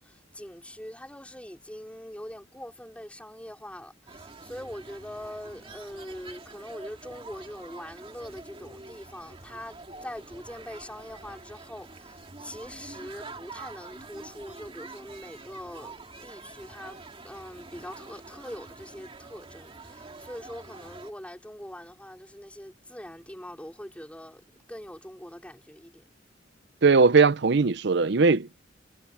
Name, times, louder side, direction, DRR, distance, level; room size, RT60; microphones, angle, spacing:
voice 1, 0.0-16.0 16.2-24.4 24.7-26.0, equal, 5° left, 4.8 m, -42 dB
sound 1, 4.1-21.1, right 3 dB, 30° right, 2.1 m, -46 dB
voice 2, 26.8-28.7, right 4 dB, 65° right, 0.7 m, -20 dB
head